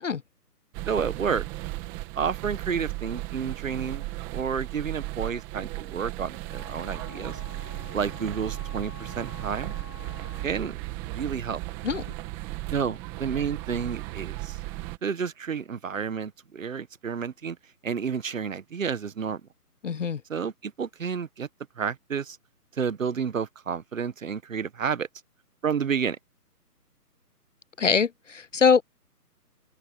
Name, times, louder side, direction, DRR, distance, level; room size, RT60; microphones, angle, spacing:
sound 1, 0.7-15.0, right 18 dB, 10° right, 1.9 m, -36 dB
voice 1, 0.9-1.5 2.1-7.4 7.9-9.7 10.4-10.8 11.1-11.6 12.7-14.6 15.0-17.6 17.8-19.4 20.3-21.5 21.8-22.4 22.8-25.1 25.6-26.2, right 6 dB, 55° right, 1.6 m, -30 dB
Wind instrument woodwind instrument, 6.5-10.8, left 6 dB, 80° left, 4.0 m, -48 dB
voice 2, 19.8-20.2 27.8-28.8, left 6 dB, 50° left, 0.5 m, -23 dB
open air
hypercardioid pair, 165°, 47 cm